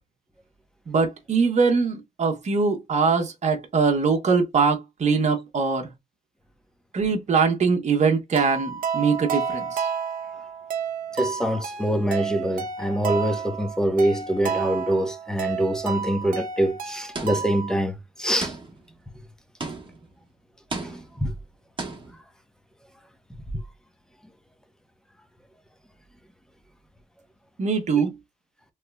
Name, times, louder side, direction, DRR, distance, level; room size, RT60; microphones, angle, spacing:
voice 1, 0.9-5.9 6.9-9.9 27.6-28.1, right 5 dB, 50° right, 1.0 m, -22 dB
sound 1, 8.4-17.7, right 6 dB, 75° right, 0.7 m, -31 dB
voice 2, 11.1-18.5 20.8-21.3, right 1 dB, 5° left, 0.9 m, -25 dB
sound 2, 17.1-17.6 18.4-19.0 19.6-20.1 20.7-21.3 21.8-22.2, right 3 dB, 35° right, 1.3 m, -35 dB
3.5 x 3.2 x 2.2 m
cardioid pair, 70°, 15 cm